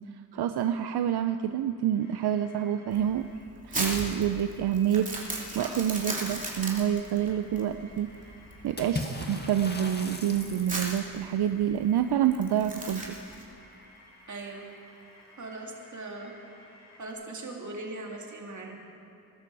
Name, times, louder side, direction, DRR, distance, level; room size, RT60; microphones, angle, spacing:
voice 1, 0.3-3.3 3.7-5.1 5.6-8.1 8.6-13.2, right 10 dB, 80° right, 9 dB, 0.6 m, -27 dB
sound 1, 2.0-3.4 3.7-17.1, left 1 dB, 80° left, 4.1 m, -56 dB
Crumpling crinkling, 2.9-13.4, right 1 dB, 20° right, 2.9 m, -37 dB
Water / Splash splatter, 8.8-11.1, left 2 dB, 25° left, 1.9 m, -37 dB
voice 2, 14.3-14.7 15.4-16.3 17.0-18.8, right 2 dB, 50° right, 0 dB, 2.4 m, -39 dB
21.0 x 13.0 x 4.7 m, 2.7 s
cardioid pair, 80°, 38 cm